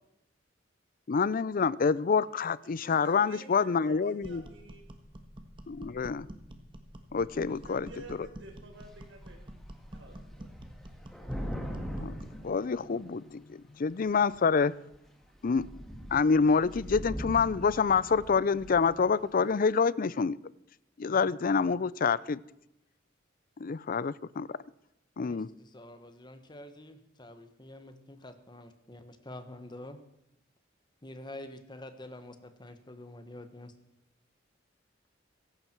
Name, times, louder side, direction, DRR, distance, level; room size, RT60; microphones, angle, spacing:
voice 1, 1.1-4.4 5.7-6.3 7.1-7.9 12.0-12.1 12.4-14.9 15.4-15.6 16.1-20.4 21.0-22.4 23.6-24.6 25.2-25.5, left 5 dB, 45° left, 0.4 m, -27 dB
voice 2, 2.6-4.8 7.3-7.4 7.6-9.4 9.9-10.5, right 1 dB, 70° right, 4.3 m, -50 dB
sound 1, 4.2-12.4, right 1 dB, 25° right, 1.5 m, -48 dB
Thunder / Rain, 8.8-9.0 9.2-13.3 14.1-14.5 14.9-15.1 15.4-19.1, equal, ahead, 1.8 m, -41 dB
voice 3, 25.2-30.0 31.0-33.7, left 1 dB, 25° left, 1.4 m, -47 dB
17.0 x 15.0 x 4.6 m
head